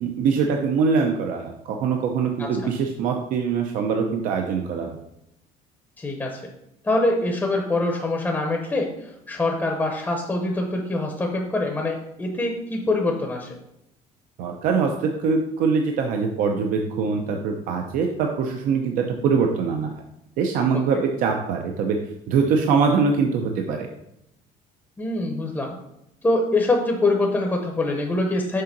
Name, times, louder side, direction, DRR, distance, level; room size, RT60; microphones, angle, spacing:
voice 1, 0.0-5.0 14.4-19.9 20.4-22.0 22.3-23.9, right 5 dB, 60° right, 3 dB, 0.7 m, -23 dB
voice 2, 6.0-6.5 6.8-8.9 9.3-13.5 25.0-25.8 26.2-28.6, left 2 dB, 10° left, 1 dB, 0.8 m, -24 dB
6.7 x 3.8 x 5.9 m, 0.82 s
cardioid pair, 165°, 15 cm